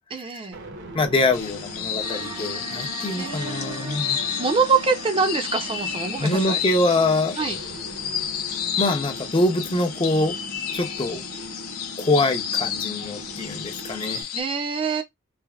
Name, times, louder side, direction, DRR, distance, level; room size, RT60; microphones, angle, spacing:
voice 1, 0.1-0.5 3.2-4.1 4.4-6.6 7.4-7.6 14.3-15.0, right 5 dB, 25° right, 0.5 m, -25 dB
sound 1, 0.5-14.2, right 1 dB, 55° right, 0.8 m, -40 dB
voice 2, 0.9-4.2 6.2-7.4 8.8-10.4 10.7-11.2 12.0-14.2, left 2 dB, 25° left, 0.5 m, -24 dB
sound 2, 1.3-14.4, left 9 dB, 80° left, 0.5 m, -31 dB
sound 3, 2.0-9.0, right 4 dB, 85° right, 0.9 m, -41 dB
3.3 x 2.1 x 2.3 m
head